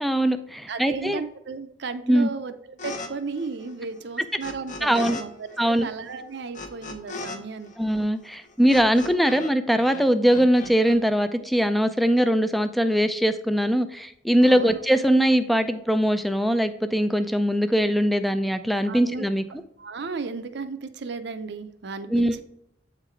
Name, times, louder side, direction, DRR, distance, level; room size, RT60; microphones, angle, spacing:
voice 1, 0.0-1.2 2.1-2.3 4.8-5.2 5.6-5.9 7.8-19.4 22.1-22.4, equal, ahead, 10 dB, 0.3 m, -21 dB
voice 2, 0.7-7.7 14.4-14.8 18.9-19.3 19.8-22.4, right 4 dB, 60° right, 10 dB, 0.5 m, -34 dB
sound 1, 2.8-3.1 3.3-5.2 5.5-9.5 9.8-11.0, left 3 dB, 40° left, 0.8 m, -38 dB
8.1 x 3.9 x 4.4 m, 0.77 s
head